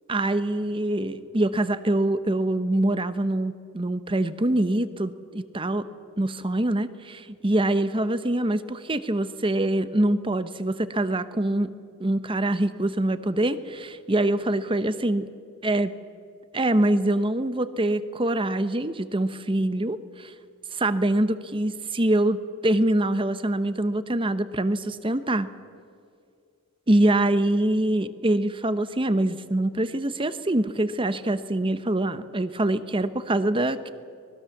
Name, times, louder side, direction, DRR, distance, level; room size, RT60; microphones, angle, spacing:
voice 1, 0.1-5.9 6.2-7.1 7.4-11.7 12.0-15.3 15.6-15.9 16.5-20.3 20.7-25.5 26.9-33.9, right 1 dB, 25° right, 13 dB, 0.9 m, -24 dB
25.0 x 19.5 x 7.2 m, 2.2 s
head